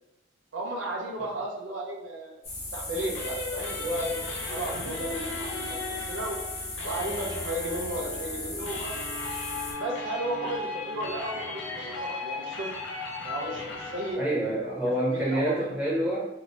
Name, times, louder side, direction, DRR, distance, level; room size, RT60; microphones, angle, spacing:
voice 1, 0.5-2.4 2.7-4.2 4.5-6.4 6.8-9.0 9.8-12.7 13.2-14.2 14.7-15.5, right 1 dB, 70° right, -2 dB, 0.6 m, -34 dB
sound 1, 2.4-9.7, left 2 dB, 35° left, 1.1 m, -37 dB
sound 2, 3.0-14.1, left 3 dB, 65° left, 0.6 m, -36 dB
voice 2, 14.2-16.2, right 1 dB, 10° right, -6 dB, 1.0 m, -27 dB
2.8 x 2.7 x 3.1 m, 0.90 s
head